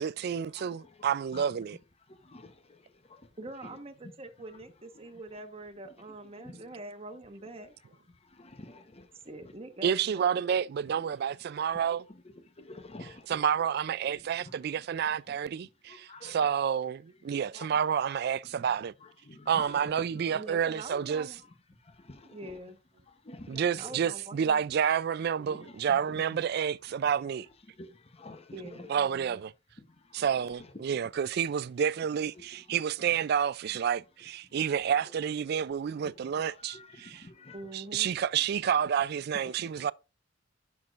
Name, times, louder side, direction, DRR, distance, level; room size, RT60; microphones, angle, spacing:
voice 1, 0.0-1.8 9.8-12.0 13.3-18.9 19.5-21.3 23.5-27.5 28.9-29.5 30.1-37.3 37.7-39.9, right 8 dB, 55° right, 0.3 m, -29 dB
voice 2, 0.6-1.1 1.3-1.4 2.1-3.3 3.6-3.8 6.4-6.6 8.2-9.1 9.4-9.5 12.2-13.4 14.4-14.5 15.9-16.5 17.5-17.8 19.0-20.2 21.8-22.6 23.2-23.9 25.4-26.2 27.8-28.9 29.8-30.5 32.4-32.5 36.0-36.1 36.5-37.6 39.4-39.9, left 2 dB, 35° left, 0.9 m, -49 dB
voice 3, 3.4-7.7 9.2-10.3 20.3-21.4 22.2-22.8 23.8-24.6 28.5-29.4 37.5-38.1, right 2 dB, 30° right, 1.2 m, -44 dB
11.5 x 6.1 x 2.5 m
head